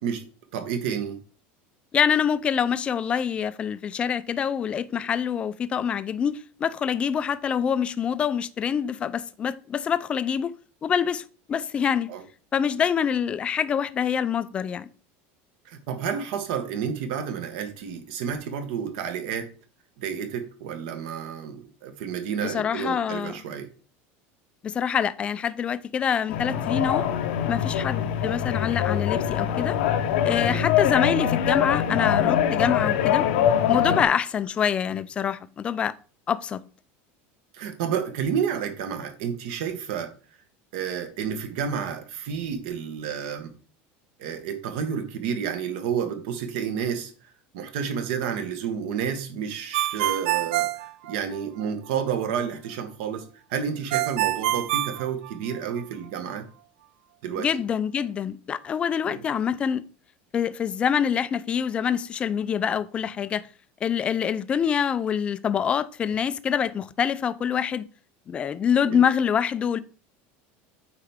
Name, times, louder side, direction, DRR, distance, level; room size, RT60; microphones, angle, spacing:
voice 1, 0.5-1.2 12.1-12.2 15.6-19.5 20.0-23.7 30.5-30.7 33.7-34.0 37.5-40.1 40.7-43.5 44.2-47.1 47.5-56.5 57.2-57.6 59.0-59.2 68.8-69.0, right 7 dB, 65° right, 1.2 m, -30 dB
voice 2, 1.9-10.5 10.8-12.1 12.5-14.9 22.4-23.3 24.6-27.1 27.5-29.8 30.2-33.3 33.7-35.9 36.3-36.6 57.4-59.8 60.3-63.5 63.8-67.8 68.3-69.8, left 8 dB, 20° left, 0.3 m, -25 dB
sound 1, 26.3-34.0, left 9 dB, 85° left, 0.8 m, -23 dB
Ringtone, 49.7-51.7 53.9-55.8, right 15 dB, 90° right, 0.4 m, -26 dB
8.4 x 4.5 x 3.5 m
cardioid pair, 170°, 6 cm